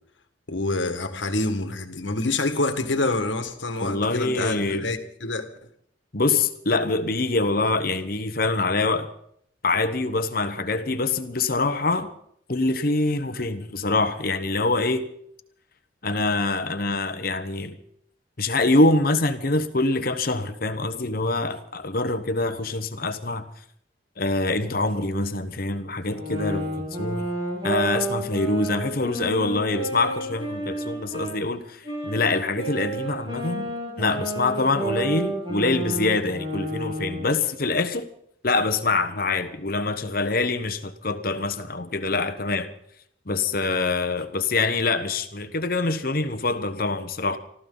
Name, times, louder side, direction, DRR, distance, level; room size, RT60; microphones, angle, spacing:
voice 1, 0.5-5.4, left 2 dB, 80° left, 1.7 m, -26 dB
voice 2, 3.8-4.9 6.1-9.1 9.6-12.1 12.5-15.1 16.0-17.8 18.4-23.4 24.2-27.3 27.6-33.7 34.0-38.1 38.4-42.7 43.3-47.4, left 3 dB, 50° left, 1.1 m, -25 dB
sound 1, 26.1-31.4 31.8-37.4, right 1 dB, 25° right, 6.9 m, -31 dB
25.0 x 14.0 x 4.0 m
head